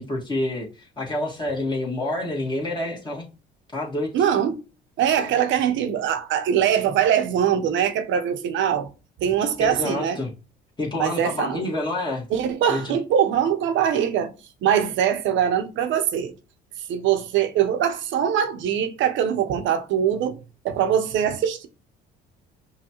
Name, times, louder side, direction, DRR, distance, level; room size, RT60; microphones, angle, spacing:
voice 1, 0.0-3.3 3.7-4.2 9.6-10.3 10.8-12.2 12.7-13.0, left 2 dB, 20° left, 1.5 m, -28 dB
voice 2, 4.1-4.6 5.0-8.9 9.2-10.2 11.0-11.7 12.3-14.3 14.6-16.3 16.9-20.4 20.6-21.7, right 9 dB, 65° right, 0.7 m, -22 dB
5.4 x 2.3 x 2.9 m
supercardioid pair, 75°, 21 cm